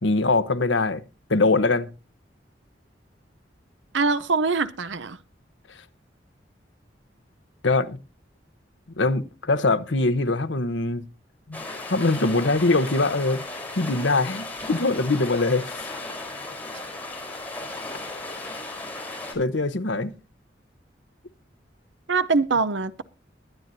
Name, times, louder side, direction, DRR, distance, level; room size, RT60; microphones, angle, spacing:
voice 1, 0.0-1.0 1.3-1.9 7.6-8.0 9.0-11.0 11.5-11.6 11.9-13.4 13.7-15.9 19.3-20.1, left 3 dB, 80° left, 1.1 m, -22 dB
voice 2, 3.9-5.2 22.1-23.0, right 4 dB, 80° right, 0.8 m, -23 dB
sound 1, 11.5-19.4, left 2 dB, 10° left, 4.2 m, -36 dB
23.0 x 9.2 x 2.8 m
head